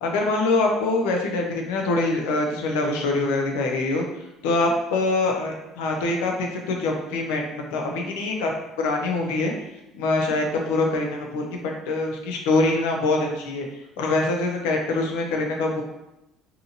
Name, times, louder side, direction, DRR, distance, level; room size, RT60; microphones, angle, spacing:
voice 1, 0.0-4.0 4.4-8.5 8.8-9.5 9.9-13.7 14.0-15.8, left 2 dB, 90° left, 1 dB, 0.5 m, -24 dB
2.7 x 2.5 x 2.6 m, 0.90 s
supercardioid pair, 90°, 0 cm